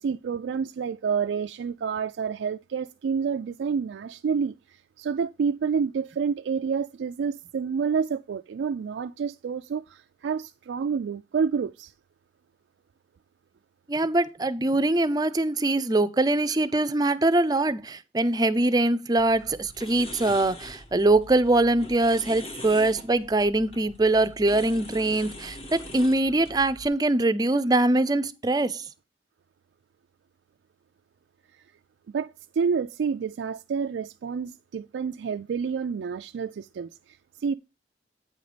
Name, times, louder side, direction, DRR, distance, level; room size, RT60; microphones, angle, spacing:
voice 1, 0.0-11.9 32.1-37.6, right 6 dB, 90° right, 0.3 m, -29 dB
voice 2, 13.9-28.9, right 2 dB, 20° right, 0.5 m, -23 dB
sound 1, 19.2-26.9, left 1 dB, 35° left, 1.2 m, -43 dB
8.7 x 5.2 x 4.9 m
head